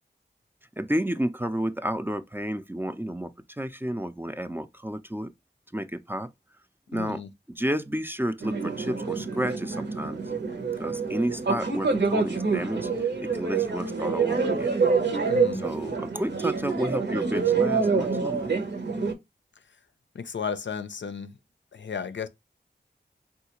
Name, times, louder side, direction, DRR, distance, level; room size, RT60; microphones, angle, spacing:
voice 1, 0.8-5.3 5.7-6.3 6.9-7.2 7.5-10.2 10.8-12.9 13.2-14.7 15.5-18.5, equal, 10° right, 0.4 m, -31 dB
voice 2, 6.9-7.3 15.3-15.7 20.1-21.3 21.7-22.3, left 6 dB, 80° left, 0.4 m, -34 dB
sound 1, 8.4-19.1, right 4 dB, 70° right, 0.8 m, -26 dB
3.6 x 2.4 x 2.9 m
wide cardioid pair, 55°, 19 cm